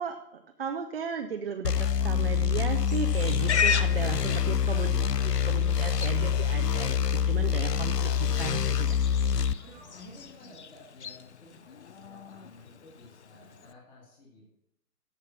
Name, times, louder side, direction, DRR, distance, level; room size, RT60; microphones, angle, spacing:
voice 1, 0.0-8.9, right 6 dB, 40° right, 5 dB, 0.8 m, -36 dB
sound 1, 1.6-9.5, left 8 dB, 85° left, 0.7 m, -26 dB
Livestock farm animals working animals, 2.9-13.7, left 6 dB, 50° left, 0.5 m, -37 dB
sound 2, 3.1-10.3, right 2 dB, 5° right, 0.7 m, -55 dB
voice 2, 9.6-14.5, left 2 dB, 10° left, -3 dB, 1.8 m, -53 dB
14.5 x 5.9 x 5.8 m, 0.81 s
figure-of-eight pair, 140°, 47 cm